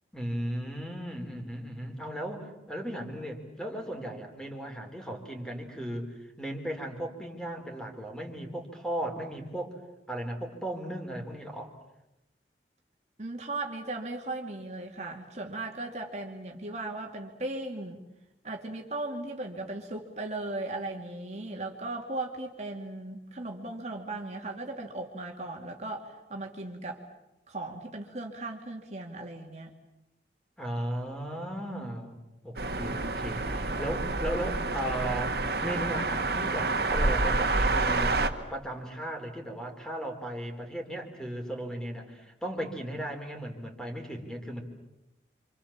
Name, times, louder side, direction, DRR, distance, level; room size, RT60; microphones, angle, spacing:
voice 1, 0.1-9.8 10.1-11.7 30.6-38.3 38.5-44.6, right 1 dB, 5° left, 2 dB, 4.0 m, -36 dB
voice 2, 13.2-18.0 18.4-27.0 27.5-29.7, right 2 dB, 40° right, 2 dB, 2.5 m, -37 dB
sound 1, 32.6-38.3, right 3 dB, 60° right, 2.1 m, -28 dB
30.0 x 26.5 x 7.4 m, 0.92 s
head